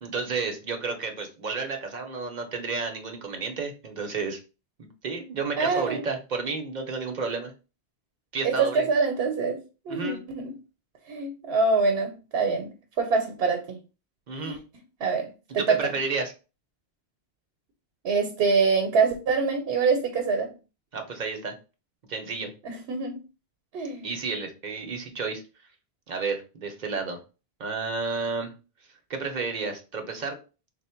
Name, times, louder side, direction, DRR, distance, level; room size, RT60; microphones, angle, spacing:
voice 1, 0.0-4.4 5.0-7.5 8.3-8.9 9.9-10.2 14.3-14.6 15.5-16.3 20.9-21.6 22.1-22.5 24.0-25.4 26.1-27.2 27.6-28.5 29.1-30.4, right 4 dB, 50° right, 0.7 m, -31 dB
voice 2, 5.6-6.1 8.4-10.5 11.1-13.8 14.4-14.6 15.0-15.9 18.0-20.5 22.6-23.2 23.7-24.1, right 4 dB, 75° right, 0.9 m, -25 dB
3.4 x 2.1 x 4.3 m
omnidirectional pair, 1.1 m